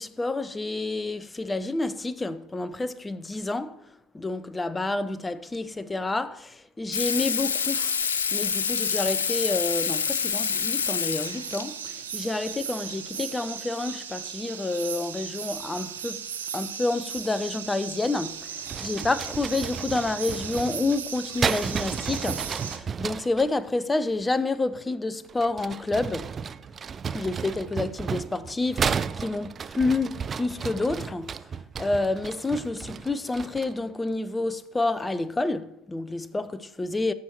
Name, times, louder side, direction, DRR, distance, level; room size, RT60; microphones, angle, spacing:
voice 1, 0.0-3.8 4.1-7.9 8.3-16.3 16.5-26.3 27.1-31.4 31.8-37.1, left 2 dB, 15° left, 0.6 m, -29 dB
Water tap faucet / Sink (filling or washing), 6.9-11.6 13.2-13.3, left 6 dB, 80° left, 0.8 m, -27 dB
sound 1, 11.2-22.8, right 8 dB, 75° right, 1.1 m, -37 dB
sound 2, 18.7-23.5 25.3-33.8, right 6 dB, 30° right, 0.4 m, -33 dB
15.0 x 6.3 x 4.5 m
figure-of-eight pair, 70°, 0 cm